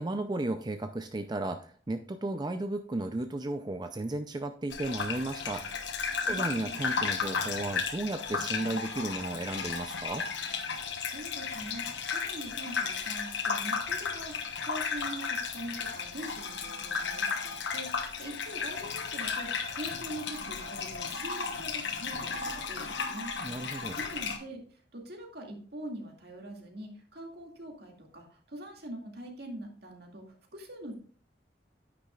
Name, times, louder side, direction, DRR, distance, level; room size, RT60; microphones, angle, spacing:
voice 1, 0.0-5.9 6.2-10.3 23.4-24.0, right 2 dB, 25° right, 8 dB, 0.4 m, -34 dB
Gurgling / Bathtub (filling or washing), 4.7-24.4, left 5 dB, 80° left, 1.2 m, -34 dB
voice 2, 6.3-6.8 11.0-23.6 24.0-24.6 24.9-30.2 30.5-30.9, right 1 dB, 60° right, 1 dB, 2.2 m, -43 dB
9.9 x 9.2 x 2.4 m, 0.43 s
head